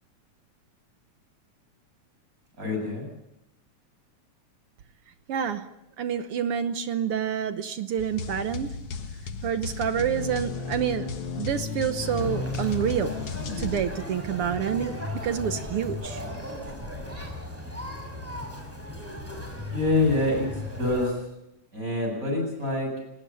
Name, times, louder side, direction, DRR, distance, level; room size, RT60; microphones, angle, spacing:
voice 1, 2.6-3.1 19.7-20.5 20.8-21.1 21.7-22.9, left 2 dB, 25° right, 2 dB, 8.2 m, -25 dB
voice 2, 5.3-5.7 6.0-8.7 9.4-11.1 11.4-13.1 13.6-16.2, right 8 dB, 65° right, 10 dB, 1.5 m, -28 dB
sound 1, 8.0-13.8, left 4 dB, 55° left, 2.4 m, -34 dB
Conversation, 12.0-21.1, left 1 dB, 5° right, 5.9 m, -36 dB
27.5 x 19.0 x 7.0 m, 0.88 s
omnidirectional pair, 3.4 m